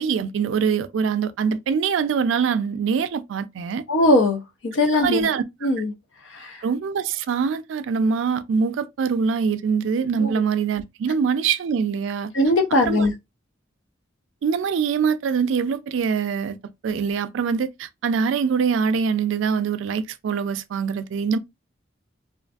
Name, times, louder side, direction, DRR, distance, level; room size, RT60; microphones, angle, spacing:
voice 1, 0.0-3.8 5.0-5.4 6.6-12.3 12.8-13.1 14.4-16.6 16.8-21.4, right 6 dB, 75° right, 0.3 m, -23 dB
voice 2, 3.9-5.3 5.6-5.9 6.2-6.6 10.2-10.3 12.3-13.1, left 1 dB, 75° left, 0.5 m, -20 dB
2.5 x 2.5 x 2.3 m
head